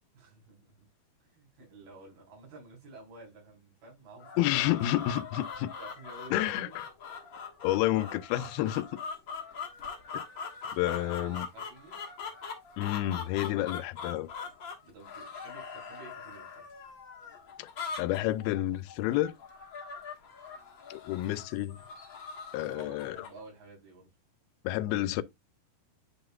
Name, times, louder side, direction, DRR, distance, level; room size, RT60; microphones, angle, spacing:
voice 1, 0.1-0.9 1.2-4.9 5.4-5.5 5.8-6.8 10.7-12.1 14.8-16.7 22.5-24.1, right 3 dB, 75° right, 5.7 m, -51 dB
sound 1, 4.2-23.4, left 5 dB, 50° left, 1.5 m, -42 dB
voice 2, 4.4-5.7 6.3-6.9 7.6-9.0 10.1-10.2 10.7-11.5 12.8-14.3 17.6-17.7 18.0-19.3 20.9-21.8 22.5-23.3 24.6-25.2, left 15 dB, 85° left, 2.4 m, -30 dB
9.9 x 5.1 x 2.3 m
omnidirectional pair, 4.3 m